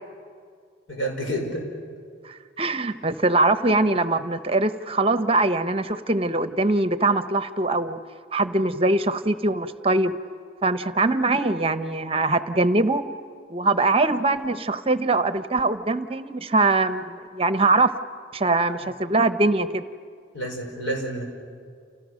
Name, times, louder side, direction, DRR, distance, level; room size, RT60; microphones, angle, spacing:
voice 1, 0.9-1.7 20.3-21.2, right 1 dB, 85° left, 2 dB, 5.4 m, -29 dB
voice 2, 2.2-8.0 8.3-10.1 10.6-13.0 13.5-17.9 18.3-19.8, right 2 dB, 30° right, 11 dB, 0.9 m, -22 dB
30.0 x 29.0 x 6.5 m, 2.2 s
head